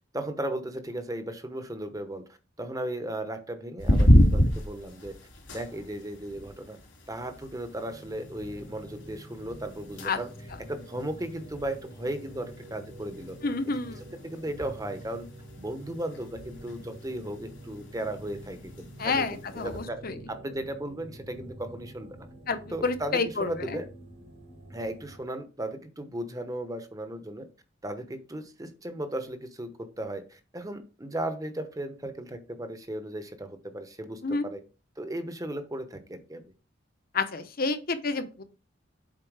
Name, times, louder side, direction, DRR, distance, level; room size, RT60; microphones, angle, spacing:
voice 1, 0.1-2.2 2.6-5.2 5.5-6.8 7.1-10.3 10.6-13.4 14.2-15.3 15.6-22.3 22.7-23.9 24.7-27.5 27.8-34.6 35.0-36.4, right 1 dB, 20° right, 9 dB, 0.9 m, -36 dB
sound 1, 3.8-19.9, equal, 90° left, 2.9 m, -30 dB
sound 2, 7.8-25.2, right 1 dB, 70° right, 2.4 m, -47 dB
voice 2, 13.4-14.0 19.0-20.2 22.5-23.5 34.2-34.5 37.1-38.4, left 3 dB, 50° left, 10 dB, 0.9 m, -29 dB
7.6 x 4.4 x 4.7 m, 0.33 s
head